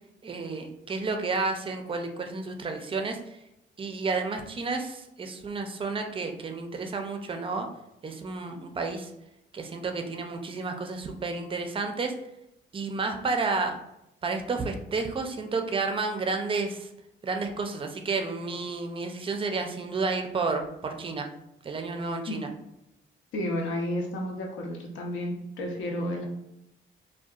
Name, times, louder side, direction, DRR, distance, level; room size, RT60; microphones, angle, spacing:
voice 1, 0.2-3.4 3.8-7.7 8.0-9.1 9.5-12.1 12.7-13.8 14.2-16.9 17.2-21.3 21.6-22.5, right 4 dB, 25° right, 5 dB, 0.4 m, -31 dB
voice 2, 23.3-26.2, left 1 dB, 75° left, 2 dB, 0.6 m, -31 dB
2.6 x 2.2 x 2.3 m, 0.83 s
cardioid pair, 90°, 20 cm